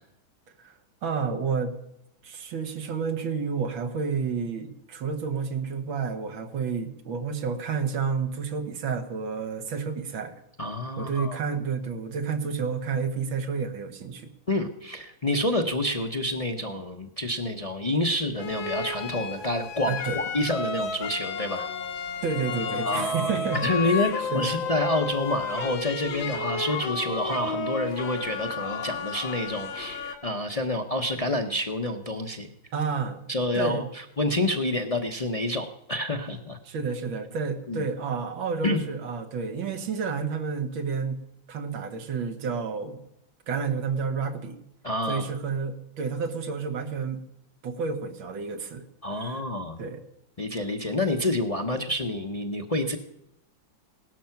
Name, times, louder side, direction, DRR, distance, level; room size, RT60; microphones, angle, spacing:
voice 1, 1.0-1.7 2.2-10.4 11.0-14.3 19.9-20.2 22.2-23.7 24.3-24.6 32.7-33.2 33.5-33.9 36.7-41.2 41.5-43.0 43.5-44.6 45.1-47.2 47.6-48.8 49.2-49.4 49.8-50.0, right 5 dB, 90° right, 7 dB, 2.1 m, -30 dB
voice 2, 10.6-11.4 14.5-21.7 22.9-32.5 33.3-36.6 37.7-37.8 38.6-38.8 44.8-45.3 49.0-49.8 50.4-53.0, left 1 dB, 40° left, 5 dB, 0.5 m, -28 dB
sound 1, 18.4-30.1, left 4 dB, 85° left, 2.2 m, -32 dB
17.5 x 12.5 x 5.9 m, 0.81 s
omnidirectional pair, 2.1 m